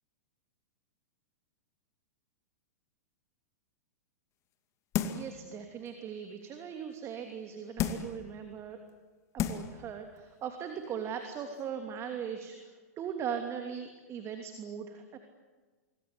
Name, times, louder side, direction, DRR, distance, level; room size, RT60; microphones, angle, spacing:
sound 1, 4.9-5.4 5.9-6.0 7.8-8.2 8.9-9.0 9.4-9.8 10.2-10.3, left 9 dB, 35° left, 2.3 m, -32 dB
voice 1, 5.0-8.8 9.3-12.5 13.0-15.2, right 7 dB, 30° right, 5 dB, 2.9 m, -39 dB
26.0 x 22.0 x 9.7 m, 1.3 s
hypercardioid pair, 105°, 9 cm